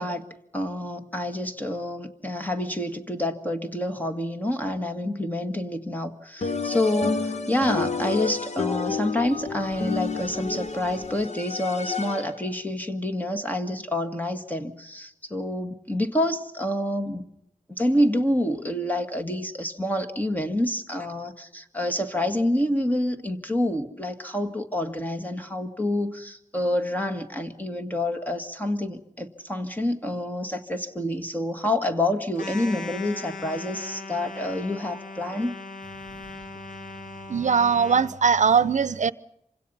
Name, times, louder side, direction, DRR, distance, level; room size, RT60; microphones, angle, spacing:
voice 1, 0.0-17.3 17.8-35.6, left 1 dB, 10° left, 2.0 m, -28 dB
sound 1, 6.4-12.5, left 4 dB, 55° left, 1.1 m, -30 dB
sound 2, 32.4-38.2, left 3 dB, 85° left, 2.6 m, -39 dB
voice 2, 37.3-39.1, right 6 dB, 65° right, 0.8 m, -20 dB
27.5 x 25.5 x 5.6 m
wide cardioid pair, 120°, 14 cm